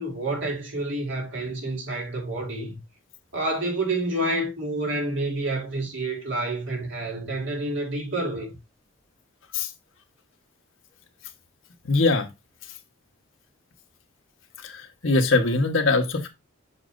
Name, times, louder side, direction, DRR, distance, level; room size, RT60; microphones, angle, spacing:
voice 1, 0.0-2.8 3.3-8.5, right 2 dB, 65° right, 3.1 m, -28 dB
voice 2, 11.8-12.3 14.6-16.3, left 3 dB, 70° left, 1.3 m, -22 dB
7.2 x 6.3 x 2.6 m
head